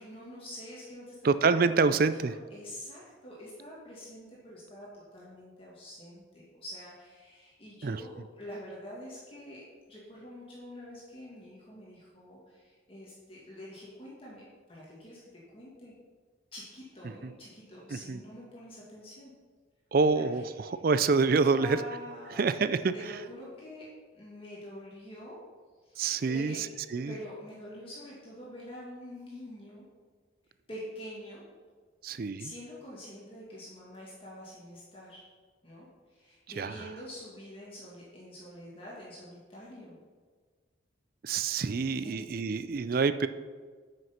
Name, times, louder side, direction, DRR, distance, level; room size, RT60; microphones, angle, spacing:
voice 1, 0.0-1.3 1.6-14.4 14.7-15.9 16.5-19.3 20.1-20.7 21.5-22.5 22.9-25.4 25.8-26.0 26.3-26.7 27.1-29.8 30.7-31.4 32.4-35.3 35.6-40.0 42.0-42.3, equal, 30° left, -6 dB, 2.0 m, -46 dB
voice 2, 1.2-2.3 7.8-8.0 17.2-17.3 17.9-18.2 19.9-21.8 22.4-22.9 26.0-27.1 32.0-32.5 36.6-36.9 41.2-43.3, right 4 dB, 45° right, 13 dB, 0.4 m, -27 dB
9.2 x 6.4 x 5.8 m, 1.5 s
head